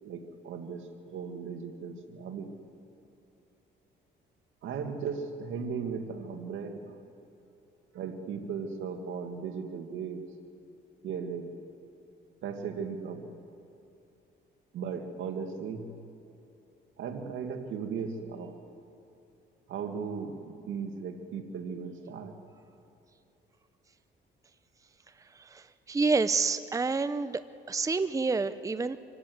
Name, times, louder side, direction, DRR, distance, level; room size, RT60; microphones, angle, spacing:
voice 1, 0.0-2.5 4.6-7.0 7.9-10.2 11.0-11.5 12.4-13.3 14.7-15.9 17.0-18.6 19.7-22.3, right 6 dB, 80° right, 5 dB, 2.1 m, -37 dB
voice 2, 25.9-27.4 27.7-29.0, right 4 dB, 15° right, 13 dB, 0.6 m, -27 dB
25.5 x 16.5 x 8.0 m, 2.8 s
cardioid pair, 90°, 20 cm